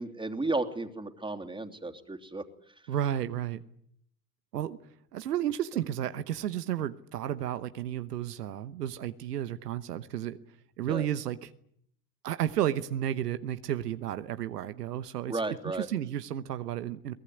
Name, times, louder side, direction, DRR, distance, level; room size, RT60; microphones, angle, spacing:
voice 1, 0.0-2.7 10.9-11.1 15.3-15.9, right 2 dB, 10° right, 5 dB, 3.0 m, -34 dB
voice 2, 2.9-3.6 4.5-4.8 5.1-10.4 10.8-11.5 12.2-17.1, right 11 dB, 85° right, 11 dB, 1.1 m, -32 dB
23.0 x 18.5 x 9.7 m, 0.69 s
hypercardioid pair, 70°, 46 cm